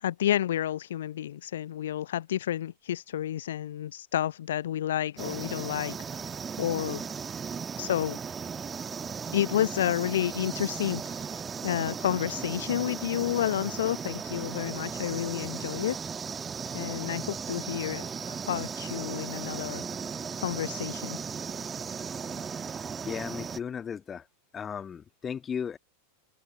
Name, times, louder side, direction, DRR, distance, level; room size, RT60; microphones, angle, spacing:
voice 1, 0.0-7.0 7.8-8.2 9.3-16.0 16.7-19.8 20.4-21.2, left 11 dB, 60° left, 0.5 m, -30 dB
sound 1, 5.2-23.6, right 6 dB, 20° right, 1.6 m, -36 dB
voice 2, 23.1-24.2 24.5-25.8, left 7 dB, 20° left, 1.5 m, -35 dB
figure-of-eight pair, 90°, 0 cm